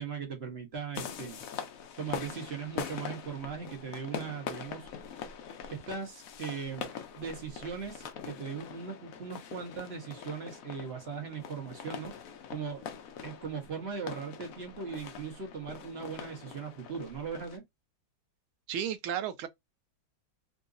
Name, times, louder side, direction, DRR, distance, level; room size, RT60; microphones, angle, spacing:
voice 1, 0.0-1.4 2.0-4.9 5.7-6.9 7.1-12.1 12.5-12.8 13.2-17.6, right 6 dB, 40° right, 1.1 m, -39 dB
sound 1, 0.9-17.6, left 7 dB, 75° left, 0.7 m, -43 dB
voice 2, 18.7-19.5, right 9 dB, 80° right, 1.4 m, -33 dB
3.7 x 2.6 x 2.4 m
omnidirectional pair, 2.3 m